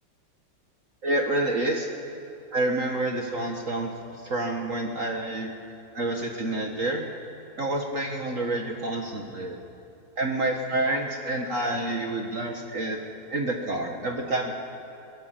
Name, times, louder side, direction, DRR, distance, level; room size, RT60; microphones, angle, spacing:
voice 1, 1.0-1.9 2.5-5.5 5.9-7.1 7.6-9.6 10.2-13.0 13.3-14.5, right 2 dB, 45° right, 2 dB, 1.8 m, -28 dB
22.5 x 20.0 x 7.6 m, 3.0 s
omnidirectional pair, 2.0 m